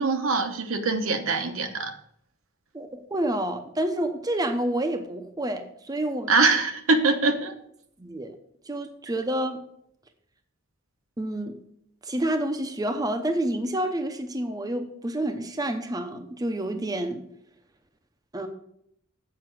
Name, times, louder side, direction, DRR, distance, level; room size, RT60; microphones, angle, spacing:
voice 1, 0.0-1.9 6.3-7.5, right 3 dB, 75° right, 6 dB, 0.9 m, -23 dB
voice 2, 2.7-6.3 8.0-8.4 8.7-9.6 11.2-11.6 12.0-17.2 18.3-18.5, right 1 dB, 20° right, 6 dB, 0.6 m, -29 dB
7.6 x 5.0 x 6.3 m, 0.72 s
head